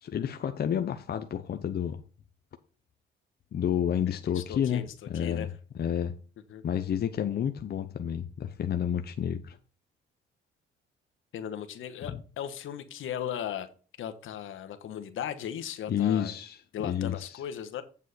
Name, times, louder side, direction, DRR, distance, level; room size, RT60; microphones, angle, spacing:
voice 1, 0.0-2.0 3.5-4.8 5.1-5.5 5.8-6.1 6.6-9.6 15.9-16.6 16.8-17.1, left 9 dB, 50° left, 0.8 m, -29 dB
voice 2, 4.1-5.5 6.5-6.6 11.3-13.7 14.0-16.3 16.7-17.8, left 9 dB, 75° left, 1.3 m, -37 dB
8.3 x 7.3 x 4.2 m
cardioid pair, 95°, 21 cm